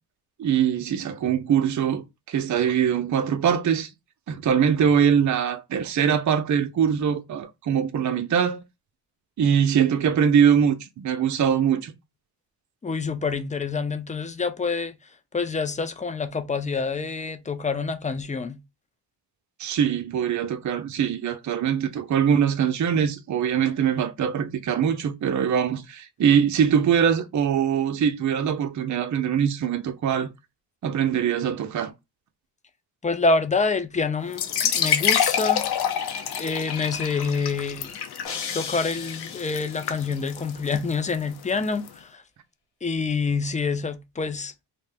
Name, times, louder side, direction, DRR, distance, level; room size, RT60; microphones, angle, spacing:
voice 1, 0.4-3.9 4.3-8.6 9.4-11.9 19.6-30.3 30.8-31.9, right 8 dB, 45° right, 0.6 m, -22 dB
voice 2, 12.8-14.9 15.3-18.6 33.0-35.7 36.4-38.0 38.5-42.2 42.8-44.5, left 4 dB, 20° left, 0.4 m, -27 dB
sound 1, 34.3-41.9, left 8 dB, 60° left, 0.7 m, -27 dB
sound 2, 38.2-40.3, left 6 dB, 85° left, 1.1 m, -36 dB
2.7 x 2.1 x 3.3 m
cardioid pair, 80°, 43 cm